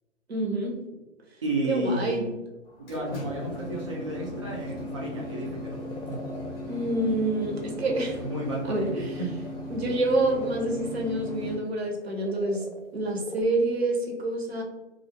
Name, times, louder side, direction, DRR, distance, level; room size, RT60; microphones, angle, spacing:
voice 1, 0.3-0.8 1.7-2.2 4.4-4.5 6.7-8.3 8.7-9.1 9.7-12.7 12.9-14.6, right 2 dB, 60° right, 0 dB, 0.8 m, -27 dB
voice 2, 1.4-2.2 2.8-5.8 8.2-8.9 9.2-9.3, right 1 dB, 25° right, -4 dB, 0.4 m, -32 dB
sound 1, 2.6-11.6, left 1 dB, 20° left, 0.7 m, -37 dB
sound 2, 5.1-5.2 5.5-6.6 7.0-7.6 8.4-8.5 10.0-10.7 11.6-11.7 11.9-13.4, left 3 dB, 55° left, 0.5 m, -43 dB
2.4 x 2.3 x 2.6 m, 1.1 s
figure-of-eight pair, 140°, 36 cm